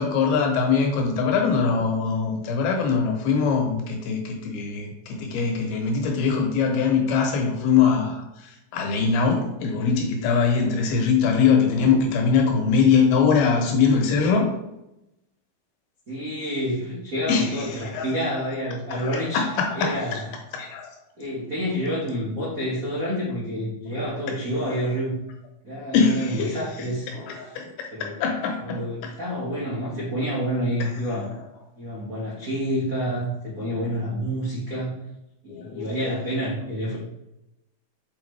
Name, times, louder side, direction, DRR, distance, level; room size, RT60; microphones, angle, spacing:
voice 1, 0.0-14.5 17.3-18.1 19.0-20.2 20.5-20.9 25.9-26.6 27.1-29.1 35.5-36.0, left 5 dB, 80° left, 1 dB, 3.1 m, -22 dB
voice 2, 11.6-12.0 12.4-12.8 16.1-19.4 19.7-20.2 21.2-25.2 25.6-27.1 27.9-28.1 28.6-31.3 31.8-35.0 35.4-37.0, equal, 90° right, -7 dB, 0.7 m, -28 dB
7.0 x 4.8 x 3.3 m, 0.89 s
omnidirectional pair, 4.4 m